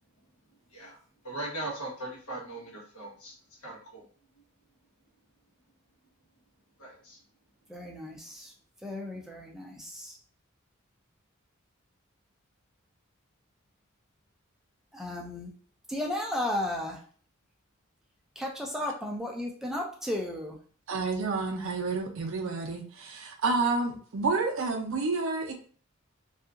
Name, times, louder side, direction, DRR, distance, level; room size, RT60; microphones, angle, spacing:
voice 1, 1.2-3.3 3.6-4.1 6.8-7.2, right 1 dB, 80° left, -3 dB, 1.1 m, -39 dB
voice 2, 7.7-8.5 8.8-10.2 14.9-15.5 15.9-17.0 18.4-20.6, left 1 dB, ahead, -1 dB, 0.4 m, -34 dB
voice 3, 20.9-25.5, right 3 dB, 65° right, 3 dB, 0.5 m, -29 dB
2.7 x 2.4 x 2.4 m, 0.43 s
head